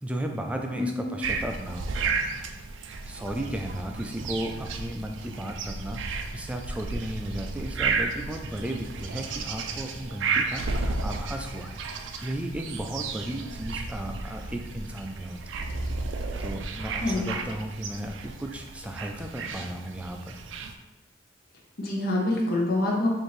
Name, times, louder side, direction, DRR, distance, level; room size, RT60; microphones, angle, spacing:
voice 1, 0.0-1.9 2.2-2.5 3.0-15.7 16.4-20.4, right 1 dB, 5° right, 3 dB, 0.3 m, -35 dB
voice 2, 0.7-1.1 17.0-17.3 21.8-23.1, left 2 dB, 55° left, -2 dB, 0.8 m, -26 dB
sound 1, 1.2-20.7, right 4 dB, 85° right, 0.4 m, -33 dB
4.5 x 2.6 x 3.1 m, 1.0 s
head